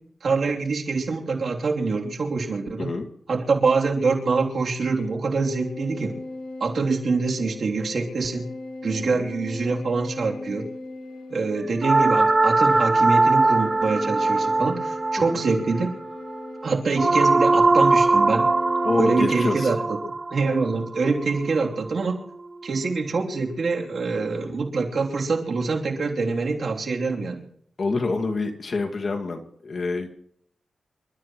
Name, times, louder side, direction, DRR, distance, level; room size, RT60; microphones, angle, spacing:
voice 1, 0.2-2.9 3.3-6.1 6.6-8.5 8.8-10.6 11.3-15.9 16.6-18.5 19.0-20.0 20.3-22.2 22.6-27.4, right 4 dB, 60° right, 0 dB, 3.2 m, -25 dB
sound 1, 5.4-19.6, left 2 dB, 75° left, 5.2 m, -38 dB
sound 2, 11.8-22.0, right 3 dB, 30° right, 0.5 m, -21 dB
voice 2, 18.8-19.7 27.8-30.1, left 3 dB, 50° left, 3 dB, 2.2 m, -27 dB
28.0 x 13.0 x 3.1 m, 0.65 s
cardioid pair, 80°, 0 cm